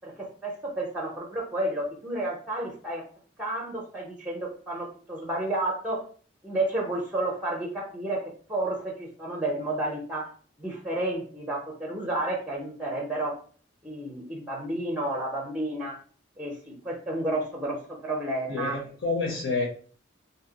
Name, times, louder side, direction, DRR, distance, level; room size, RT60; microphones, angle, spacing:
voice 1, 0.0-3.0 3.4-6.0 6.4-8.2 8.5-10.3 10.6-13.3 13.8-16.0 16.4-18.8, right 1 dB, 5° right, -1 dB, 0.6 m, -31 dB
voice 2, 18.5-19.6, left 3 dB, 65° left, -2 dB, 0.8 m, -28 dB
2.7 x 2.0 x 3.8 m, 0.43 s
head